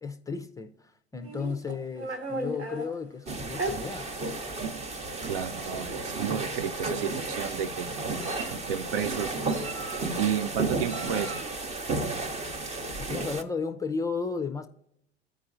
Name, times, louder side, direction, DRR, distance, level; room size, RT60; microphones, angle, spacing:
voice 1, 0.0-4.1 13.0-14.7, left 5 dB, 10° left, 0.5 m, -34 dB
Meow, 1.2-2.9 3.5-3.7 4.6-4.7 5.1-5.3 6.3-6.4 6.8-7.3 7.9-8.7 9.5-10.2 10.8-11.5, right 1 dB, 80° right, 1.7 m, -36 dB
sound 1, 3.3-13.4, right 3 dB, 20° right, 0.8 m, -33 dB
voice 2, 5.3-7.9 8.5-9.3 10.2-11.4, right 9 dB, 55° right, 0.6 m, -31 dB
14.5 x 5.0 x 2.6 m
figure-of-eight pair, 75°, 32 cm